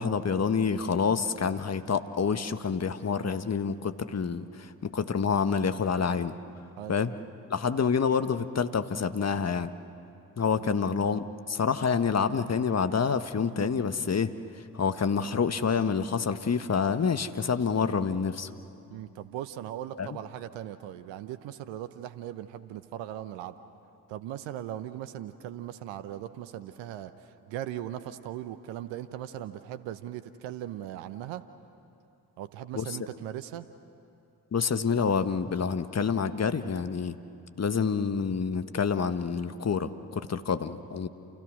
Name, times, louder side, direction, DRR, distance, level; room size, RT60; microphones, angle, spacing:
voice 1, 0.0-6.4 6.9-7.1 7.5-9.7 10.4-18.5 20.0-20.2 32.7-33.0 34.5-37.2 37.6-41.1, left 6 dB, 35° left, 10 dB, 1.4 m, -28 dB
voice 2, 18.9-23.5 24.1-27.1 27.5-31.4 32.4-33.7, right 12 dB, 70° right, 12 dB, 1.0 m, -39 dB
29.0 x 29.0 x 6.4 m, 2.7 s
hypercardioid pair, 40°, 46 cm